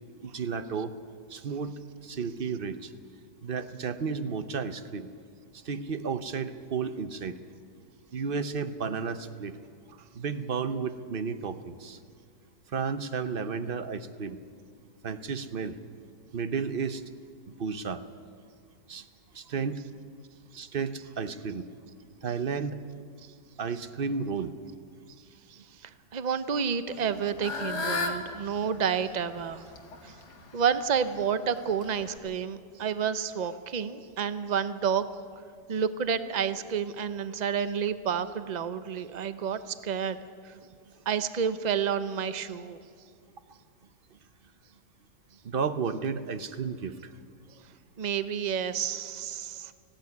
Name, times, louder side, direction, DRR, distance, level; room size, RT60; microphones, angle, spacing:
voice 1, 0.3-0.9 1.3-1.7 2.0-2.9 3.4-5.1 5.7-7.4 8.1-9.5 10.1-12.0 12.7-14.4 15.0-15.8 16.3-17.0 17.6-18.0 18.9-19.0 19.3-19.8 20.6-21.6 22.2-22.8 23.6-24.5 45.4-46.9, right 5 dB, 45° right, 11 dB, 0.7 m, -32 dB
voice 2, 25.5-29.6 30.0-30.1 30.5-35.1 35.7-40.2 40.4-40.5 41.1-42.8 48.0-49.7, right 7 dB, 90° right, 12 dB, 0.3 m, -30 dB
Fowl / Bird, 26.9-32.2, left 4 dB, 70° left, 2.2 m, -37 dB
18.5 x 15.5 x 9.5 m, 2.2 s
omnidirectional pair, 1.8 m